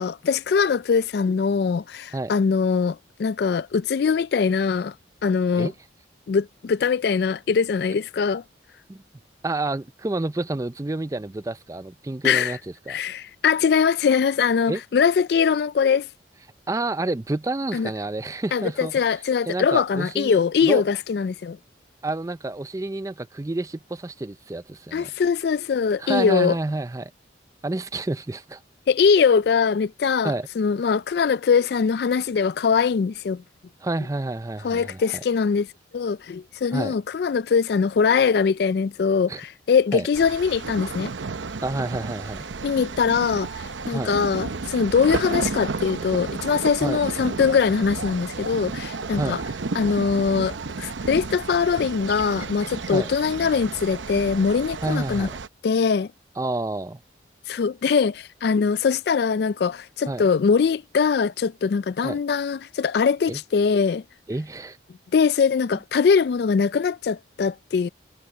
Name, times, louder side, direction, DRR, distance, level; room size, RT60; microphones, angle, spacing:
voice 1, 0.0-4.9 5.2-5.7 6.3-8.4 12.2-12.6 12.9-16.1 17.7-17.9 18.5-21.6 24.9-26.6 28.9-33.4 34.6-35.7 35.9-41.1 42.6-49.4 49.7-55.3 55.6-56.1 57.5-64.0 65.1-67.9, left 6 dB, 55° left, 0.3 m, -22 dB
voice 2, 9.4-13.0 14.7-14.8 16.7-19.1 19.5-20.8 22.0-25.1 26.0-27.1 27.6-28.6 30.2-30.5 33.8-35.0 36.7-36.9 39.3-39.4 39.9-40.1 41.6-42.4 43.9-44.1 46.8-47.0 49.2-49.4 52.9-53.1 54.8-55.4 56.4-57.0 60.1-60.2 62.0-62.2 63.3-63.4 64.3-64.8, right 2 dB, 15° right, 0.4 m, -29 dB
sound 1, 40.1-55.5, right 4 dB, 80° right, 0.7 m, -32 dB
head